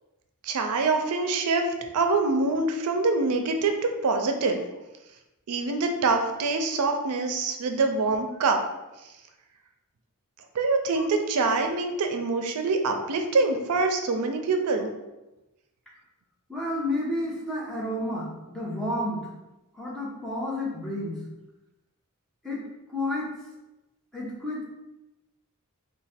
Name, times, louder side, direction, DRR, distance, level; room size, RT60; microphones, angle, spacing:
voice 1, 0.4-1.7 1.9-4.6 5.5-8.6 10.5-14.9, right 3 dB, 90° right, 5 dB, 0.4 m, -25 dB
voice 2, 16.5-19.3 19.7-21.2 22.4-22.6 22.9-23.3 24.1-24.6, left 1 dB, ahead, -6 dB, 0.8 m, -31 dB
3.0 x 2.2 x 4.2 m, 0.99 s
head